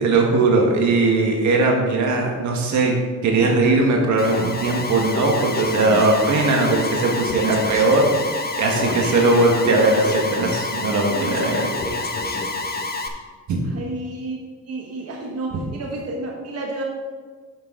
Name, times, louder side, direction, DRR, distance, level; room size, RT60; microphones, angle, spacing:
voice 1, 0.0-2.9 3.2-11.7 13.5-13.6, right 3 dB, 70° right, 1 dB, 1.5 m, -19 dB
Alarm, 4.2-13.1, left 3 dB, 30° left, 0.9 m, -27 dB
voice 2, 8.9-9.9 13.6-14.4 14.6-16.8, right 2 dB, 55° right, 0 dB, 1.3 m, -31 dB
8.6 x 6.9 x 3.8 m, 1.5 s
cardioid pair, 90°, 30 cm